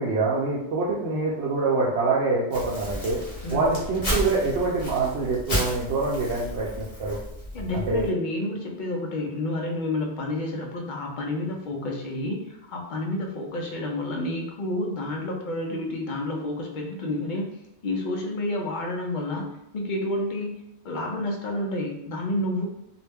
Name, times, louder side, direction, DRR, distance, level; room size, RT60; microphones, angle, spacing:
voice 1, 0.0-3.2 3.5-7.2 7.7-8.1, right 3 dB, 80° right, -5 dB, 0.8 m, -25 dB
Crumpling crinkling, 2.5-8.1, equal, 35° left, 0.9 m, -32 dB
voice 2, 7.5-17.5 17.8-22.7, left 1 dB, 55° left, 0 dB, 0.6 m, -30 dB
2.4 x 2.1 x 3.3 m, 0.85 s
omnidirectional pair, 1.1 m